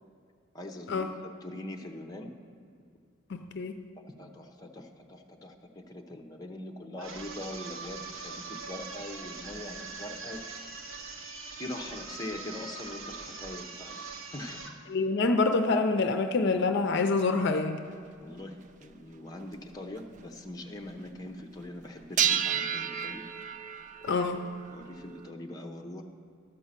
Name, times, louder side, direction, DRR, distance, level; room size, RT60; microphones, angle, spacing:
voice 1, 0.5-2.3 4.1-10.6 11.6-14.0 14.3-14.6 18.2-23.2 24.7-26.0, left 1 dB, 20° left, 2 dB, 0.7 m, -42 dB
voice 2, 3.3-3.8 14.9-17.8 24.0-24.4, left 3 dB, 55° left, 7 dB, 0.5 m, -26 dB
sound 1, 7.0-14.8, right 4 dB, 70° right, 1.0 m, -42 dB
sound 2, 17.8-17.9 18.8-18.9 19.4-19.5 20.0-20.2 22.2-25.3, right 9 dB, 35° right, 0.3 m, -31 dB
12.0 x 5.4 x 7.3 m, 2.3 s
head